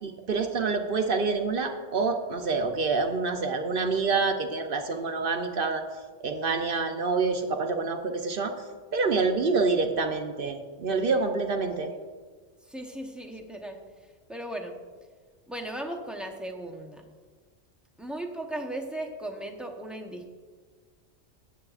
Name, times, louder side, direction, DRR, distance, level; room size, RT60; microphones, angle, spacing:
voice 1, 0.0-5.8 6.2-8.5 8.9-11.9, right 4 dB, 55° right, 5 dB, 0.7 m, -27 dB
voice 2, 12.7-13.8 14.3-14.8 15.5-17.0 18.0-20.3, right 1 dB, ahead, 2 dB, 0.6 m, -37 dB
14.5 x 8.3 x 2.4 m, 1.5 s
omnidirectional pair, 1.3 m